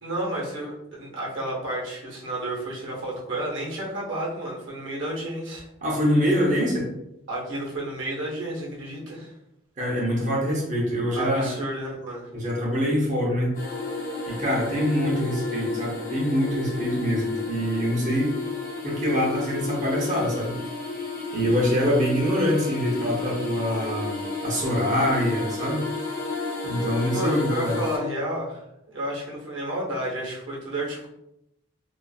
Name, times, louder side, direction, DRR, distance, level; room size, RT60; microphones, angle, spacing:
voice 1, 0.0-5.6 7.3-9.3 11.1-12.3 26.4-26.5 27.1-28.6 28.9-31.1, right 1 dB, 65° right, -4 dB, 0.9 m, -31 dB
voice 2, 5.8-6.9 9.8-11.5 12.3-13.6 14.3-18.3 18.8-20.6 21.3-25.8 26.6-27.8, equal, 35° right, -3 dB, 0.7 m, -24 dB
sound 1, 13.5-28.0, left 3 dB, 40° left, 1.0 m, -32 dB
2.4 x 2.4 x 2.3 m, 0.83 s
head